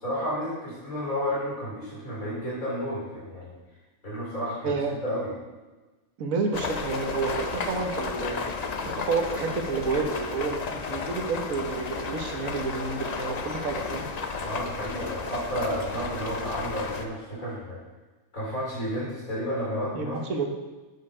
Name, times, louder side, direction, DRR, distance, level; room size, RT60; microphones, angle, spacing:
voice 1, 0.0-3.6 4.0-4.7 5.0-5.3 14.4-17.8 18.3-20.2, equal, 70° left, -6 dB, 4.1 m, -31 dB
voice 2, 4.6-5.0 6.2-8.4 8.9-14.1 19.9-20.5, right 4 dB, 75° right, 3 dB, 1.5 m, -29 dB
sound 1, 6.5-17.1, left 4 dB, 45° left, 0.5 m, -33 dB
8.9 x 6.6 x 4.9 m, 1.2 s
omnidirectional pair, 1.5 m